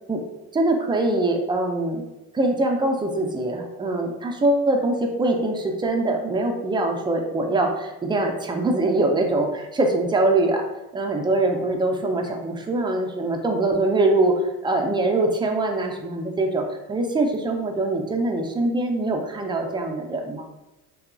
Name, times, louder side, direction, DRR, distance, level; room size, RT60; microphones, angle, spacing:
voice 1, 0.5-2.0 2.3-10.7 10.9-20.5, right 2 dB, 10° right, 2 dB, 0.4 m, -23 dB
2.8 x 2.3 x 2.4 m, 1.0 s
supercardioid pair, 65°, 41 cm